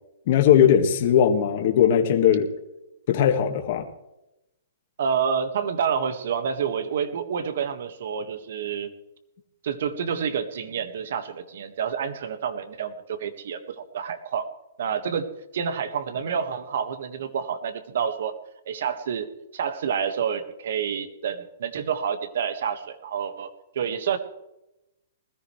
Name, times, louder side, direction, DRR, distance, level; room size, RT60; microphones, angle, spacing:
voice 1, 0.3-2.5 3.1-3.9, left 9 dB, 45° left, 4 dB, 1.7 m, -19 dB
voice 2, 5.0-8.9 9.6-14.5 14.8-18.3 18.6-19.3 19.5-23.5 23.7-24.2, right 7 dB, 65° right, 9 dB, 1.6 m, -28 dB
20.5 x 14.0 x 3.3 m, 0.91 s
hypercardioid pair, 160°, 0 cm